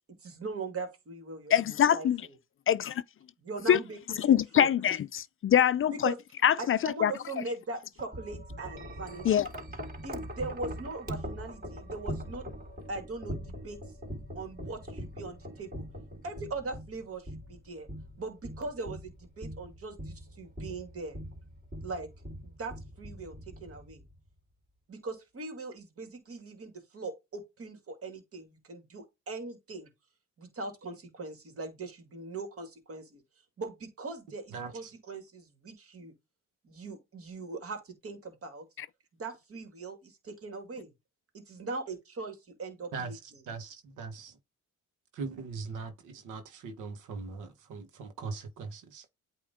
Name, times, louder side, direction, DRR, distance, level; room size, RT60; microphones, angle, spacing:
voice 1, 0.2-1.5 1.9-2.1 3.4-4.7 5.9-6.2 6.6-9.4 10.0-12.4 12.9-13.8 14.4-15.8 16.2-17.9 18.2-21.2 21.8-22.1 22.4-23.4 23.6-24.0 24.9-29.9 30.4-33.2 33.6-36.1 36.6-38.6 39.2-40.0 40.4-40.9 41.5-43.2, right 3 dB, 50° right, 2.3 m, -40 dB
voice 2, 1.5-2.2 2.7-2.9 3.7-3.8 4.2-6.1 6.4-7.4 9.2-9.5 38.8-38.9, left 9 dB, 45° left, 0.5 m, -24 dB
Wind chime, 8.0-24.2, equal, 30° right, 3.6 m, -42 dB
voice 3, 34.5-34.9 42.9-44.4 45.2-49.0, right 4 dB, 85° right, 1.4 m, -40 dB
8.6 x 3.0 x 3.7 m
cardioid pair, 90°, 30 cm